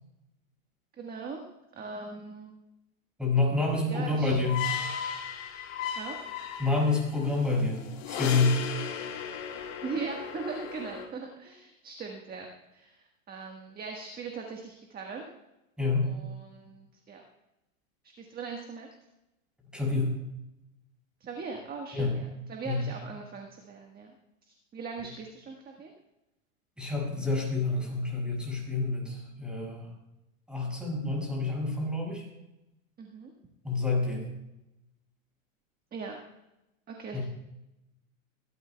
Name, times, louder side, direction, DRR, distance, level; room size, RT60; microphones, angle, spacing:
voice 1, 1.0-2.5 3.9-4.4 5.9-6.2 9.8-15.3 16.0-17.2 18.2-18.9 21.2-24.1 24.4-25.9 33.0-33.3 35.9-36.2 36.9-37.2, right 4 dB, 20° right, 2 dB, 1.5 m, -40 dB
voice 2, 3.2-4.6 6.6-8.6 15.8-16.1 19.7-20.2 21.9-22.1 22.6-22.9 26.8-29.9 30.5-32.2 33.6-34.3 37.1-37.2, left 3 dB, ahead, -3 dB, 6.1 m, -28 dB
sound 1, 3.8-11.1, left 8 dB, 65° left, 3.8 m, -36 dB
23.5 x 12.5 x 2.3 m, 0.91 s
supercardioid pair, 130°, 42 cm